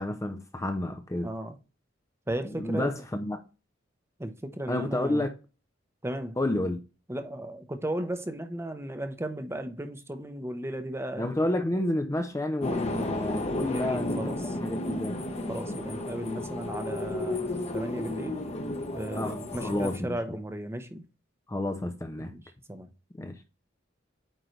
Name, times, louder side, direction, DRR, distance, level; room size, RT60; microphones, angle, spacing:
voice 1, 0.0-1.3 2.4-3.4 4.7-5.3 6.4-6.8 11.2-15.2 19.1-20.4 21.5-22.3 23.2-23.3, left 1 dB, 15° left, 0.6 m, -30 dB
voice 2, 1.2-1.6 2.3-2.9 4.2-5.2 6.0-6.4 7.1-11.3 13.7-14.4 15.5-18.4 18.9-21.0 22.2-22.4 22.7-22.9, right 1 dB, 15° right, 0.8 m, -35 dB
sound 1, 12.6-20.0, left 2 dB, 35° left, 1.1 m, -33 dB
9.0 x 3.8 x 3.2 m
head